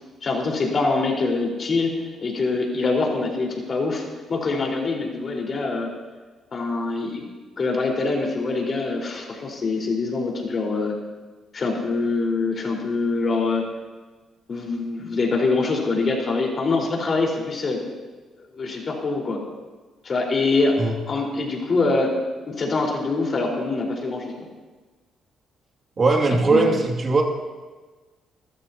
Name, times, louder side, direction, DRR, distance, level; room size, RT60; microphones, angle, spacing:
voice 1, 0.2-4.0 4.3-5.9 6.5-7.2 7.6-10.9 11.5-13.6 14.5-17.8 18.5-19.4 20.0-20.8 21.1-22.1 22.5-24.3 26.5-26.6, left 3 dB, 45° left, -1 dB, 4.4 m, -24 dB
voice 2, 26.0-27.2, right 3 dB, 40° right, 1 dB, 2.4 m, -19 dB
27.5 x 14.0 x 2.9 m, 1.3 s
cardioid pair, 90°, 0 cm